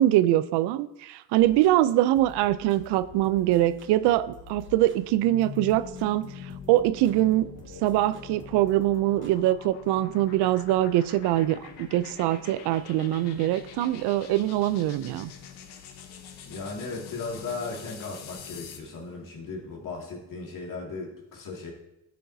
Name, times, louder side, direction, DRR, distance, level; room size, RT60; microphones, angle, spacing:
voice 1, 0.0-7.5 7.8-15.3, right 14 dB, 85° right, 15 dB, 0.5 m, -23 dB
sound 1, 1.4-9.5, right 1 dB, 30° right, 1.1 m, -50 dB
sound 2, 4.2-18.9, left 8 dB, 75° left, 1.1 m, -45 dB
voice 2, 16.5-21.7, left 3 dB, 50° left, 0 dB, 2.2 m, -36 dB
12.0 x 6.5 x 2.7 m, 0.89 s
cardioid pair, 100°, 40 cm